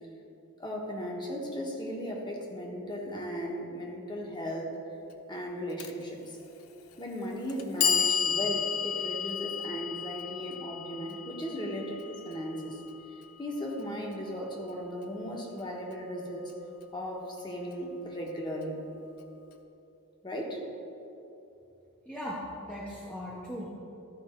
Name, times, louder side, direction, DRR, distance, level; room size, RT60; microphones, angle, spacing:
voice 1, 0.6-4.8 5.3-6.4 7.0-12.8 13.4-16.5 16.9-18.8 20.2-20.6, equal, 20° left, -1 dB, 1.3 m, -36 dB
Clock, 5.8-5.9 6.9-7.0 7.5-13.5, left 7 dB, 90° left, 0.6 m, -32 dB
voice 2, 22.0-23.7, equal, 5° left, -6 dB, 0.9 m, -38 dB
13.5 x 5.3 x 4.5 m, 2.9 s
head